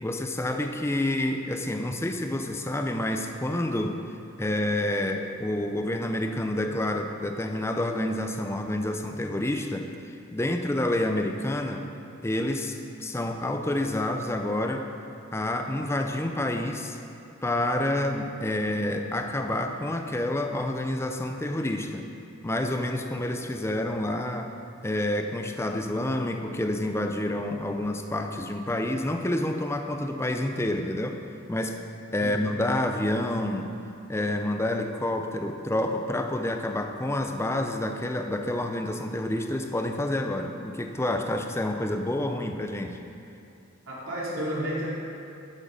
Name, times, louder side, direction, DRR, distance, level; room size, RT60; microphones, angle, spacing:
voice 1, 0.0-4.0 4.4-11.9 12.2-14.9 15.3-17.0 17.4-22.1 22.4-24.5 24.8-31.2 31.5-31.8 32.1-33.7 34.1-43.0, left 1 dB, 10° left, 5 dB, 0.5 m, -28 dB
voice 2, 43.9-44.9, equal, 70° right, -6 dB, 2.6 m, -31 dB
11.5 x 6.3 x 5.0 m, 2.7 s
head